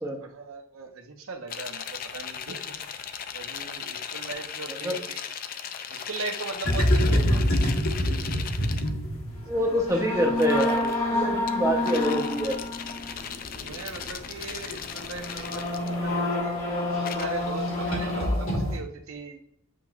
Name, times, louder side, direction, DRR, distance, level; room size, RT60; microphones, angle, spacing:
voice 1, 0.2-2.8 3.3-5.3 5.9-7.6 9.5-9.8 10.1-10.2 13.6-16.6 17.2-19.4, right 4 dB, 70° right, 5 dB, 0.8 m, -39 dB
sound 1, 1.5-8.9 10.2-11.0 11.5-16.2 17.0-17.2, left 8 dB, 40° left, 0.4 m, -38 dB
sound 2, 6.6-18.8, left 1 dB, 70° left, 1.4 m, -27 dB
voice 2, 9.5-12.6, equal, 15° right, 1 dB, 0.7 m, -26 dB
7.4 x 3.0 x 2.3 m, 0.71 s
head